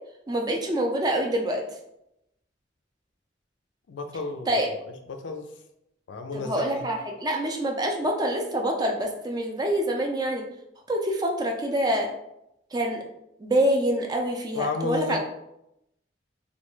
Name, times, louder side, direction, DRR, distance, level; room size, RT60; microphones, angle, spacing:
voice 1, 0.3-1.6 4.5-4.7 6.3-10.4 10.9-12.1 12.7-13.0 13.4-15.2, right 1 dB, 20° right, 2 dB, 0.4 m, -26 dB
voice 2, 3.9-4.6 5.1-5.5 6.1-6.9 14.6-15.2, left 3 dB, 80° left, 6 dB, 0.4 m, -32 dB
3.3 x 2.3 x 3.0 m, 0.83 s
head